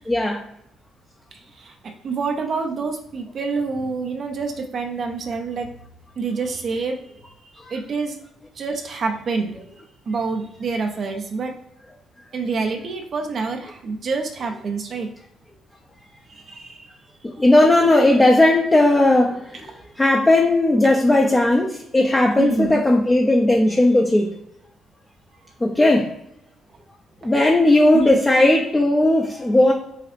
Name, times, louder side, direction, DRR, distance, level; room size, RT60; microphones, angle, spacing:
voice 1, 0.1-0.4 7.6-7.7 17.2-24.3 25.6-26.1 27.2-29.7, left 1 dB, 20° left, 0 dB, 0.7 m, -17 dB
voice 2, 1.3-5.7 6.2-8.2 8.6-9.6 10.1-11.6 12.3-15.1 16.3-16.9 22.3-22.8 25.4-25.5 27.9-28.2, right 4 dB, 50° right, 4 dB, 0.6 m, -27 dB
5.8 x 2.4 x 2.6 m, 0.77 s
figure-of-eight pair, 40°, 0 cm